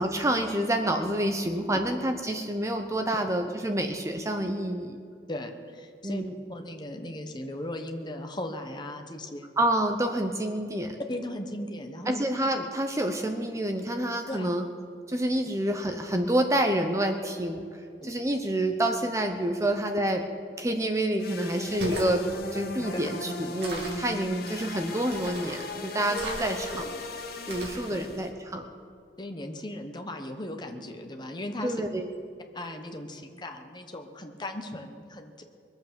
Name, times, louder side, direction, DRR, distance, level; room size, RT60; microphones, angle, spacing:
voice 1, 0.0-5.0 6.0-6.3 9.6-11.0 12.1-14.7 15.1-17.6 18.0-20.2 20.6-22.2 22.5-26.9 27.5-28.7 31.6-32.1, right 1 dB, 15° right, 5 dB, 0.7 m, -28 dB
voice 2, 5.3-9.5 11.1-12.2 14.3-14.5 18.0-18.1 27.9-28.0 29.2-31.8 32.5-35.4, left 1 dB, 25° left, 5 dB, 1.1 m, -37 dB
sound 1, 21.2-28.3, left 2 dB, 55° left, 1.4 m, -37 dB
sound 2, 21.7-22.2 23.6-24.1 25.1-25.6 26.1-26.8 27.5-27.9, equal, 65° right, 2.8 m, -36 dB
22.0 x 8.1 x 6.9 m, 2.5 s
head